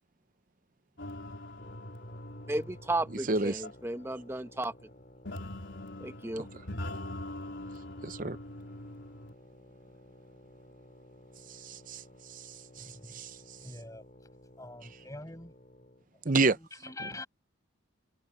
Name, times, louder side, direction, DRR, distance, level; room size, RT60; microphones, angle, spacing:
sound 1, 1.0-4.0 5.2-9.3, left 1 dB, 60° left, 4.9 m, -42 dB
sound 2, 1.6-16.1, left 1 dB, 35° left, 7.7 m, -55 dB
voice 1, 2.5-4.7 6.0-6.5, right 2 dB, 10° right, 1.2 m, -34 dB
voice 2, 3.3-3.6 8.0-8.4 11.6-12.0 12.3-12.4 12.8-13.4 16.2-16.6, right 3 dB, 40° right, 0.7 m, -29 dB
voice 3, 12.8-13.1 13.6-14.0 14.6-15.5 16.2-17.3, left 2 dB, 15° left, 6.1 m, -45 dB
head